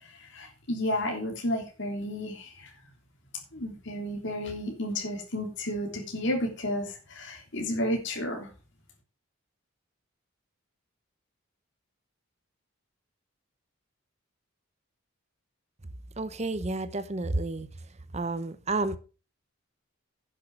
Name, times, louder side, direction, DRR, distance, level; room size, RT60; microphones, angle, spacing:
voice 1, 0.0-2.7 3.5-8.5, left 1 dB, 55° left, 3.2 m, -32 dB
voice 2, 16.2-17.7 18.1-19.0, right 2 dB, 30° right, 0.7 m, -30 dB
10.5 x 6.7 x 6.2 m
head